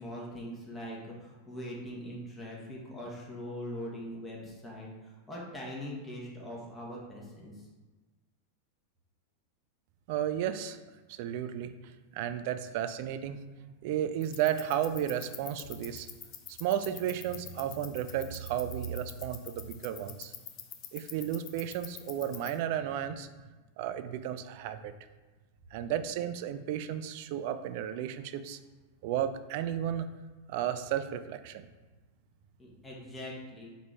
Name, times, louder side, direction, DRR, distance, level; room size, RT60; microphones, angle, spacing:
voice 1, 0.0-7.7 32.6-33.7, equal, 10° left, -4 dB, 1.1 m, -42 dB
voice 2, 10.1-10.8 11.1-11.7 12.1-13.4 13.8-16.1 16.5-20.3 20.9-23.3 23.8-24.9 25.7-28.6 29.0-30.1 30.5-31.7, right 10 dB, 50° right, 11 dB, 0.3 m, -33 dB
sound 1, 14.2-22.6, left 9 dB, 35° left, 0.4 m, -47 dB
3.9 x 3.5 x 3.5 m, 1.3 s
figure-of-eight pair, 90°, 0 cm